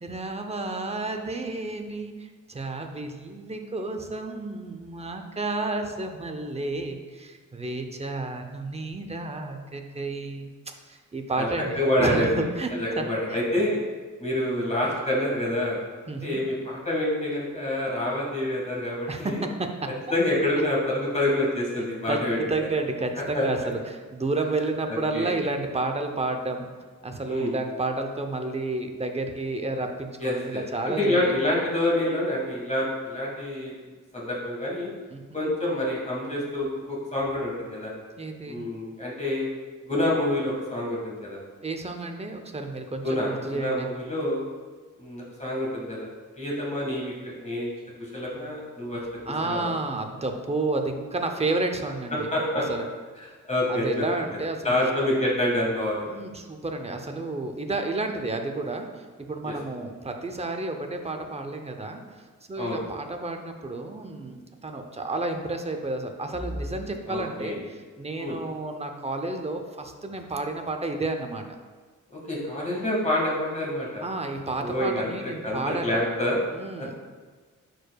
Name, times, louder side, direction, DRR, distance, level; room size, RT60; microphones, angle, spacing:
voice 1, 0.0-12.3 12.5-13.4 16.1-16.4 19.1-19.9 22.1-26.7 27.0-31.3 35.1-35.4 38.2-38.6 41.6-43.9 49.3-52.3 52.7-52.8 53.7-54.8 56.0-71.6 74.0-76.0 76.5-76.9, right 2 dB, 20° right, 5 dB, 0.6 m, -31 dB
voice 2, 11.7-12.3 12.7-13.8 14.2-15.8 16.2-19.4 20.1-22.7 23.3-23.5 24.9-25.3 27.3-27.5 30.2-33.7 34.1-34.9 35.3-37.9 38.5-39.5 39.8-41.4 43.0-44.4 45.0-46.1 46.4-47.7 48.1-49.1 49.4-49.7 52.3-52.6 53.2-53.8 54.6-56.2 59.4-59.5 62.6-62.8 67.1-67.6 68.2-68.4 72.1-74.0 74.6-76.4 76.8-77.0, left 1 dB, 20° left, -5 dB, 1.6 m, -27 dB
9.6 x 4.6 x 2.3 m, 1.4 s
wide cardioid pair, 105°, 33 cm